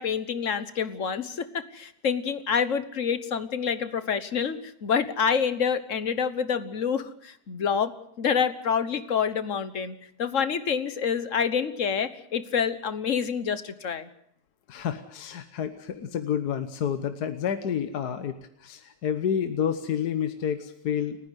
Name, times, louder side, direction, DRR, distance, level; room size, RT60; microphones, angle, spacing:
voice 1, 0.0-14.1, left 6 dB, 50° left, 13 dB, 1.4 m, -27 dB
voice 2, 14.7-21.2, left 8 dB, 70° left, 9 dB, 1.6 m, -29 dB
30.0 x 10.5 x 9.3 m, 0.70 s
omnidirectional pair, 1.8 m